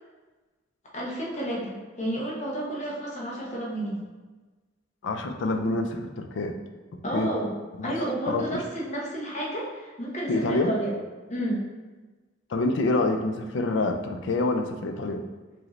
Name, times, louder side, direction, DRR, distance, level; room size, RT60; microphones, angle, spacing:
voice 1, 0.9-4.0 7.0-7.5 7.8-10.9 11.3-11.6, right 1 dB, 35° left, -4 dB, 0.9 m, -31 dB
voice 2, 5.0-6.5 7.1-7.3 7.8-8.0 8.3-8.6 10.3-10.7 12.5-15.2, left 2 dB, 65° left, 6 dB, 0.4 m, -26 dB
4.9 x 2.7 x 3.0 m, 1.3 s
head